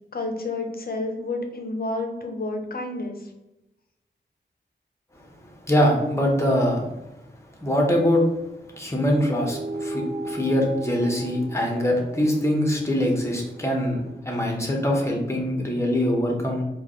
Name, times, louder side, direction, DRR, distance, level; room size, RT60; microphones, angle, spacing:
voice 1, 0.1-3.3, left 2 dB, 55° left, 3 dB, 0.7 m, -30 dB
voice 2, 5.7-6.9 7.6-8.3 8.7-16.6, equal, 15° left, 0 dB, 1.1 m, -23 dB
sound 1, 9.4-14.2, right 1 dB, 75° right, 0.5 m, -36 dB
4.7 x 2.4 x 3.0 m, 0.96 s
wide cardioid pair, 65°, 19 cm